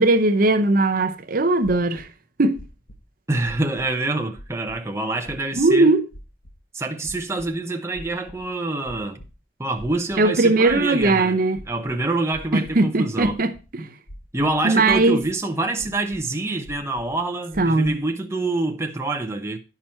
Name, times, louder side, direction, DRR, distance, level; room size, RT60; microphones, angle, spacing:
voice 1, 0.0-2.1 2.4-2.6 5.6-6.0 10.2-11.6 12.5-13.9 14.6-15.2 17.6-18.0, right 2 dB, 45° right, 0.7 m, -19 dB
sound 1, 1.6-2.1 2.5-3.0 3.4-4.0 4.4-4.8 5.3-5.7 6.1-6.5 7.0-7.5 7.9-8.5 8.8-9.3 9.8-10.3 10.7-11.1 11.5-12.7 13.2-13.6 14.1-14.6 14.9-15.3 15.8-16.2 16.6-17.2 17.5-17.9, equal, 90° left, 1.5 m, -42 dB
voice 2, 3.3-5.9 6.7-9.2 9.6-11.4 11.7-13.4 14.3-19.6, right 2 dB, 15° right, 0.7 m, -26 dB
10.0 x 6.0 x 4.3 m
head